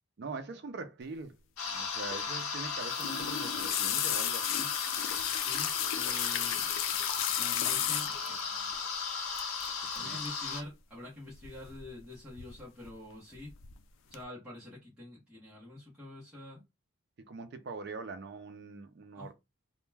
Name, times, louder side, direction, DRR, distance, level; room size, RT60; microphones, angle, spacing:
voice 1, 0.2-1.4 1.7-4.7 10.0-10.2 17.3-19.3, right 3 dB, 50° right, 0.4 m, -43 dB
sound 1, 1.6-10.6, left 5 dB, 85° left, 0.8 m, -36 dB
sound 2, 2.8-8.4 9.4-9.7 9.9-10.3 11.4-12.0 12.3-12.9 13.3-13.7 14.1-14.2, left 11 dB, 65° left, 0.3 m, -34 dB
voice 2, 5.4-6.7 7.3-8.7 9.9-13.5 14.0-16.6 19.1-19.3, left 1 dB, 5° right, 0.7 m, -47 dB
2.2 x 2.1 x 3.2 m
head